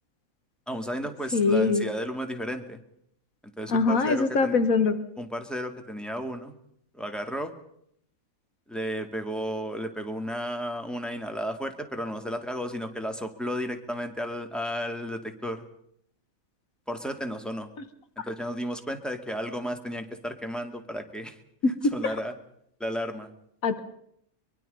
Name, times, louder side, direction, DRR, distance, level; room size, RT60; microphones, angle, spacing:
voice 1, 0.7-2.8 3.6-4.6 5.2-6.5 6.9-7.5 8.7-15.6 16.9-17.7 18.2-21.4 21.7-22.4 22.8-23.3, equal, ahead, 6 dB, 2.2 m, -33 dB
voice 2, 1.3-1.8 3.7-5.0 22.0-22.1 23.6-23.8, left 4 dB, 80° left, 10 dB, 1.7 m, -22 dB
23.5 x 23.0 x 5.4 m, 0.72 s
omnidirectional pair, 1.4 m